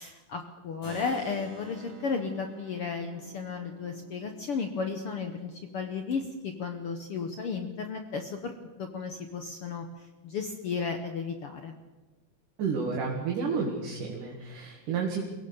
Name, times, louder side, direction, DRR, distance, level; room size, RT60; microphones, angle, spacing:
voice 1, 0.0-8.5 8.8-9.8 10.2-11.8, left 5 dB, 65° left, 6 dB, 1.4 m, -34 dB
Keyboard (musical), 0.8-6.7, right 3 dB, 40° left, 8.4 m, -47 dB
voice 2, 12.6-15.3, right 5 dB, 65° right, -1 dB, 3.7 m, -31 dB
23.5 x 17.0 x 7.1 m, 1.2 s
omnidirectional pair, 4.0 m